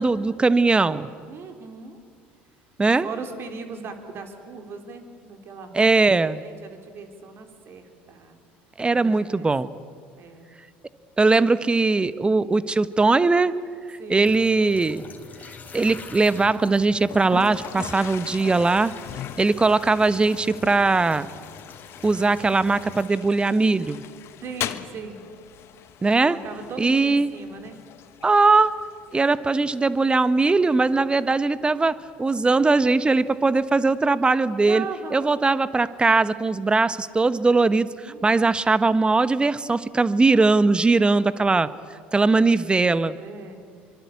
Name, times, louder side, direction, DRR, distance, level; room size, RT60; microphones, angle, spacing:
voice 1, 0.0-1.1 2.8-3.1 5.7-6.4 8.8-9.7 11.2-13.5 13.9-15.1 15.7-18.9 19.4-21.3 22.0-24.0 26.0-26.4 26.8-27.3 28.2-28.7 29.1-34.8 35.1-41.7 42.1-43.2, right 3 dB, 15° right, 15 dB, 1.1 m, -20 dB
voice 2, 1.3-2.0 2.9-5.9 6.4-8.4 8.9-9.5 10.2-10.6 14.0-14.3 24.4-25.3 26.2-27.8 34.7-35.3 38.0-38.3 43.1-43.7, right 4 dB, 45° right, 5 dB, 3.9 m, -38 dB
sound 1, 14.2-23.1, left 5 dB, 30° left, 3.3 m, -45 dB
Toilet flush, 17.0-34.0, left 11 dB, 50° left, 1.2 m, -41 dB
25.0 x 24.5 x 8.4 m, 2.1 s
hypercardioid pair, 65°, 6 cm